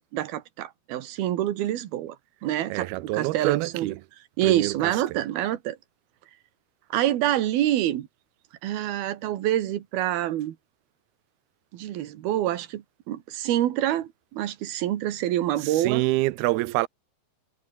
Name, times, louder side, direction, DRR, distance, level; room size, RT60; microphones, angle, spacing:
voice 1, 0.0-2.2 2.4-3.9 4.4-5.8 6.9-8.1 8.6-10.6 11.7-16.0, right 13 dB, 65° right, 3.1 m, -26 dB
voice 2, 2.7-3.9 4.4-5.2 15.6-16.9, right 19 dB, 80° right, 2.3 m, -27 dB
omnidirectional pair, 5.2 m